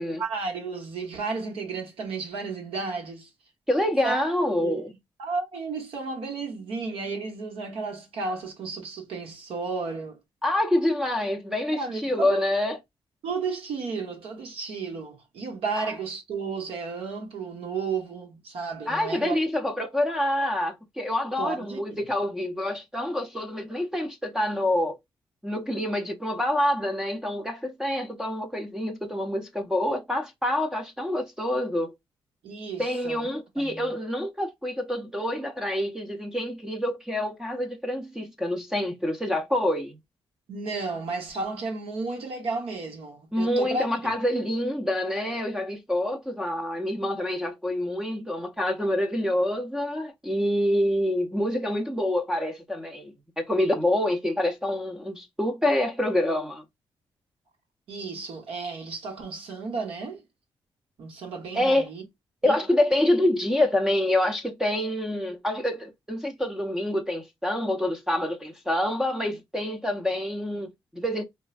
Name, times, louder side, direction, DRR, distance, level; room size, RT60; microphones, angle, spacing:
voice 1, 0.0-3.3 4.0-4.2 4.6-4.8 5.2-10.2 11.7-12.4 13.2-19.4 21.4-22.0 32.4-33.3 33.6-33.9 40.5-44.0 57.9-60.2 61.0-62.0 62.4-62.6, right 4 dB, 85° right, 1.0 m, -33 dB
voice 2, 3.7-4.9 10.4-12.8 18.9-25.0 25.4-31.9 32.8-40.0 43.3-56.6 61.5-61.9 62.4-71.2, left 1 dB, 5° right, 0.5 m, -27 dB
3.2 x 2.3 x 2.3 m
cardioid pair, 95°, 9 cm